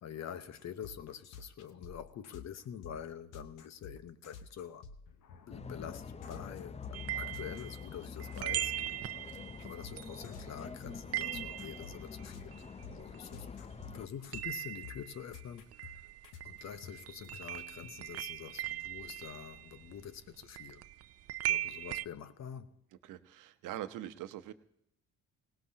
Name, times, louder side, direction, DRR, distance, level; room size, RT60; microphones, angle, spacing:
voice 1, 0.0-4.8 5.5-8.7 9.6-12.6 12.9-13.6 13.9-16.0 16.4-20.8 21.5-22.7, left 8 dB, 60° left, 1.1 m, -46 dB
sound 1, 0.5-7.9 8.2-17.9, left 6 dB, 85° left, 1.1 m, -51 dB
sound 2, 5.5-14.1, left 6 dB, 20° left, 0.5 m, -46 dB
sound 3, 6.9-13.5 13.8-22.1, right 12 dB, 50° right, 0.5 m, -40 dB
voice 2, 23.0-24.5, right 12 dB, 80° right, 0.9 m, -43 dB
19.0 x 18.0 x 2.9 m
cardioid pair, 80°, 31 cm